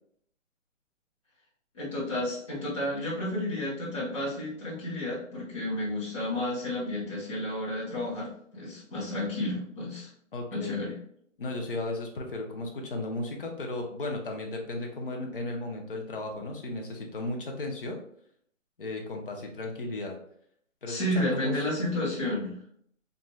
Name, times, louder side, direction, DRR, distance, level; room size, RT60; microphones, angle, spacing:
voice 1, 1.7-10.1 10.5-10.9 20.9-22.6, left 1 dB, 25° left, -9 dB, 1.0 m, -31 dB
voice 2, 10.3-10.8 11.4-18.0 18.8-20.2 20.8-21.6, left 2 dB, 45° left, 1 dB, 0.6 m, -35 dB
3.2 x 2.5 x 2.2 m, 0.67 s
hypercardioid pair, 165°, 39 cm